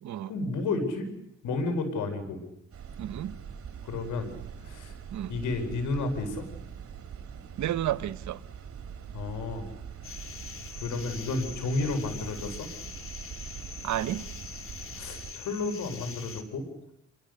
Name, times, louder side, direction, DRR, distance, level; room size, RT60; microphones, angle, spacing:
voice 1, 0.2-1.1 1.4-2.4 3.8-4.3 4.6-5.0 5.3-6.4 9.1-9.7 10.8-12.7 15.0-16.7, left 3 dB, 85° left, 5.2 m, -31 dB
sound 1, 2.7-15.3, right 7 dB, 50° right, 3.4 m, -43 dB
voice 2, 3.0-3.3 5.1-5.3 7.6-8.4 13.8-14.2, right 12 dB, 70° right, 1.0 m, -31 dB
sound 2, 10.0-16.4, left 5 dB, 45° left, 2.6 m, -43 dB
26.0 x 22.5 x 6.7 m
cardioid pair, 90°, 30 cm